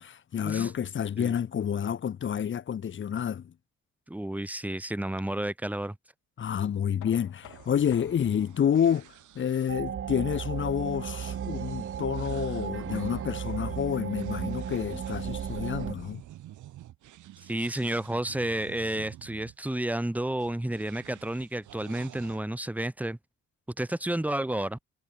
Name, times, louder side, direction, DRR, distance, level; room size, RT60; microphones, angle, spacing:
voice 1, 0.0-3.5 6.4-16.2, left 8 dB, 40° left, 0.8 m, -29 dB
voice 2, 4.1-6.0 17.5-23.2 23.8-24.8, right 1 dB, 5° right, 1.3 m, -31 dB
Knock, 7.0-12.8, left 14 dB, 85° left, 7.2 m, -56 dB
sound 1, 7.4-19.6 20.4-22.4, right 13 dB, 80° right, 2.6 m, -49 dB
sound 2, 9.7-15.9, right 8 dB, 40° right, 1.0 m, -35 dB
cardioid pair, 90°, 30 cm